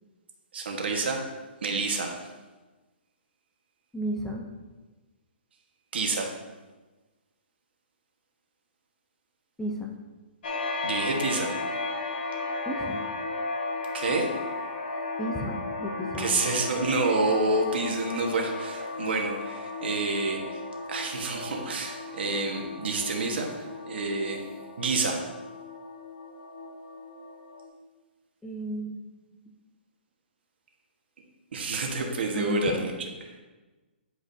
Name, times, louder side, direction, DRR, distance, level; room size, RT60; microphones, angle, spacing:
voice 1, 0.5-1.2 1.6-2.2 5.9-6.3 10.8-11.5 13.9-14.3 16.2-20.6 20.9-24.4 24.8-25.2 31.5-33.1, right 3 dB, 70° right, 2 dB, 1.4 m, -28 dB
voice 2, 3.9-4.4 9.6-9.9 12.7-13.0 15.2-16.3 28.4-29.0 32.3-32.8, equal, 5° left, 0 dB, 0.6 m, -33 dB
sound 1, 10.4-27.7, left 3 dB, 60° left, 1.5 m, -35 dB
10.0 x 4.9 x 2.7 m, 1.2 s
hypercardioid pair, 155°, 6 cm